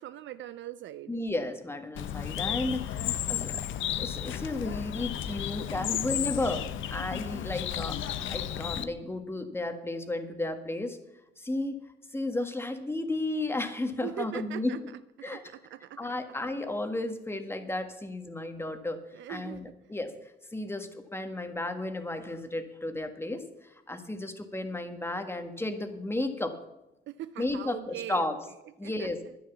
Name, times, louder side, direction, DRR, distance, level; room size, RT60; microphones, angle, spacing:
voice 1, 0.0-1.2 5.9-6.0 14.0-16.2 19.1-19.7 27.1-29.4, right 12 dB, 70° right, 13 dB, 0.5 m, -42 dB
voice 2, 1.1-3.7 4.0-11.0 11.4-11.8 12.1-14.8 15.2-15.4 16.0-19.0 19.3-20.1 20.5-23.4 23.9-26.5 27.4-28.4 28.8-29.2, left 2 dB, 10° left, 7 dB, 1.6 m, -33 dB
Bird, 1.9-8.8, left 10 dB, 75° left, 0.8 m, -33 dB
10.5 x 10.0 x 7.1 m, 0.91 s
cardioid pair, 90°, 20 cm